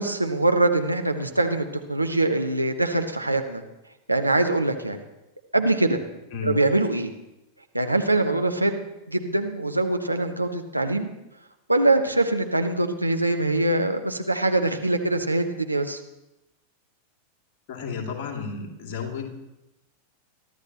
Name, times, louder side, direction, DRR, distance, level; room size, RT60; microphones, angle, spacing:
voice 1, 0.0-3.6 4.1-5.0 5.5-6.0 6.4-7.1 7.7-8.8 9.1-11.1 11.7-16.0, right 2 dB, 85° right, 5 dB, 1.1 m, -23 dB
voice 2, 17.7-19.3, left 5 dB, 45° left, 1 dB, 2.6 m, -32 dB
23.0 x 13.0 x 3.0 m, 0.93 s
figure-of-eight pair, 90°, 0 cm